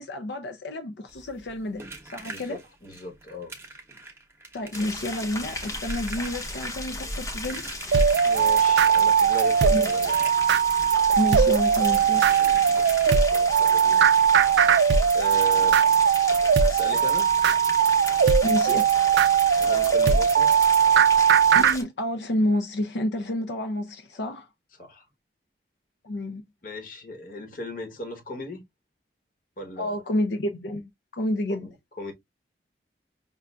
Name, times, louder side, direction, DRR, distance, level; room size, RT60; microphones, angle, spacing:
voice 1, 0.0-2.6 4.5-7.6 9.7-9.9 11.2-12.5 18.4-18.9 21.5-24.5 26.0-26.4 29.8-31.7, left 1 dB, 80° left, 0.5 m, -29 dB
sound 1, 1.1-13.6 15.1-15.2 15.4-15.6 16.0-16.1, right 3 dB, 15° right, 0.8 m, -43 dB
voice 2, 2.2-3.5 8.2-10.1 13.3-14.1 15.1-15.8 16.3-17.3 19.6-20.5 24.8-25.0 26.6-28.6 29.6-29.9 31.5-32.1, left 1 dB, 50° left, 1.0 m, -37 dB
sound 2, 4.7-21.8, left 2 dB, 20° left, 0.7 m, -36 dB
sound 3, 7.9-21.8, right 7 dB, 85° right, 0.3 m, -20 dB
5.4 x 2.5 x 2.2 m
head